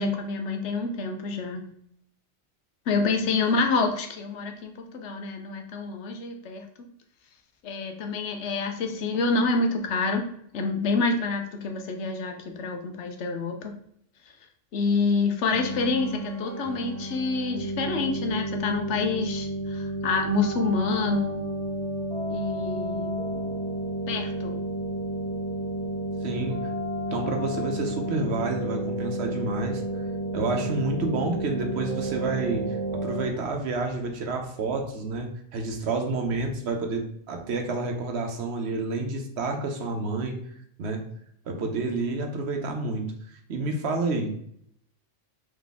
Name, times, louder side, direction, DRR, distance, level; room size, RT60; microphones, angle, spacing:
voice 1, 0.0-1.7 2.9-6.6 7.6-10.2 10.5-13.7 14.7-21.4 22.3-23.6 24.1-24.6, left 4 dB, 70° left, 4 dB, 1.0 m, -27 dB
sound 1, 15.5-33.3, right 1 dB, 5° left, 0.8 m, -31 dB
voice 2, 26.2-26.6 27.1-29.8 30.3-40.4 40.8-41.1 41.5-43.1 43.5-44.3, right 3 dB, 65° right, 4 dB, 1.0 m, -29 dB
3.9 x 3.2 x 3.5 m, 0.69 s
omnidirectional pair, 1.2 m